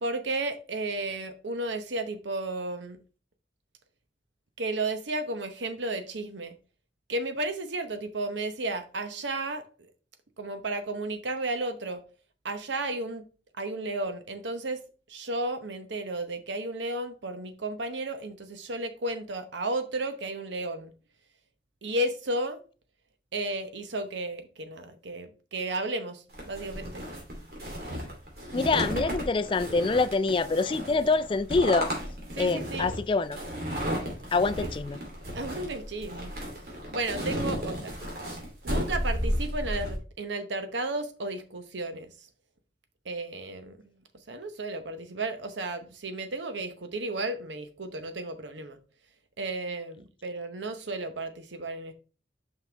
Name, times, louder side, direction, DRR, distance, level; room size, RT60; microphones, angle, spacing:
voice 1, 0.0-3.0 4.6-6.5 7.1-9.9 10.4-12.0 12.4-13.2 13.6-14.8 15.1-20.9 21.8-22.6 23.3-27.0 32.3-32.9 34.6-34.7 35.3-36.3 36.9-38.0 38.6-42.1 43.0-43.8 44.3-48.8 49.4-51.9, right 2 dB, 85° right, 0.9 m, -33 dB
sound 1, 26.3-40.0, equal, 55° right, 2.7 m, -33 dB
voice 2, 28.5-31.9 32.4-33.4 34.3-35.0, left 3 dB, 30° left, 0.3 m, -25 dB
5.9 x 5.6 x 3.3 m
head